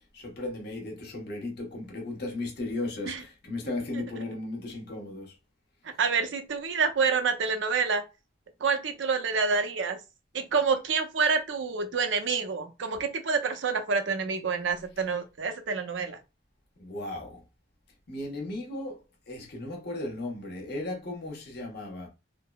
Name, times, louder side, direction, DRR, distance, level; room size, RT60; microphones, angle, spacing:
voice 1, 0.1-5.3 16.8-17.4 18.1-19.0 19.3-22.1, left 2 dB, 60° left, 1.0 m, -36 dB
voice 2, 6.0-8.0 8.6-10.0 10.3-16.2, right 5 dB, 80° right, 0.5 m, -27 dB
3.5 x 2.0 x 2.3 m
head